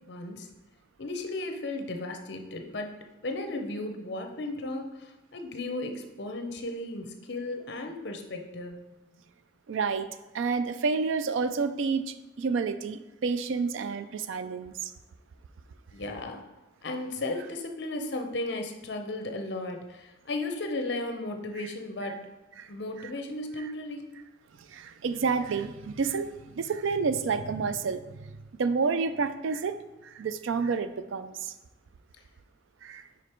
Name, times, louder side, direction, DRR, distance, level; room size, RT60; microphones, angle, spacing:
voice 1, 0.1-0.5 1.0-2.9 3.2-8.8 15.9-16.5 16.8-22.3 22.7-24.1, left 2 dB, 60° left, 4 dB, 0.7 m, -35 dB
voice 2, 9.7-14.9 22.6-22.7 24.7-28.3 28.6-29.8 30.0-31.5 32.8-33.0, right 5 dB, 80° right, 12 dB, 0.4 m, -29 dB
5.2 x 5.0 x 4.4 m, 1.0 s
head